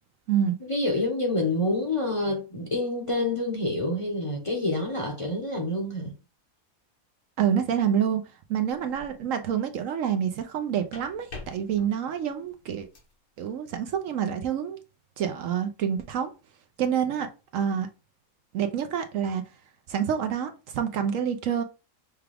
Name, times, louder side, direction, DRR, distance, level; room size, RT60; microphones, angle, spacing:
voice 1, 0.6-6.2, left 2 dB, 25° left, 0.8 m, -27 dB
voice 2, 7.4-8.2 8.5-12.9 13.4-14.8 15.2-16.3 16.8-17.9 18.5-19.4 19.9-21.6, right 8 dB, 70° right, 0.9 m, -27 dB
sound 1, 8.7-9.2 10.6-13.2, left 2 dB, 80° left, 1.9 m, -47 dB
5.8 x 2.3 x 3.4 m
omnidirectional pair, 1.5 m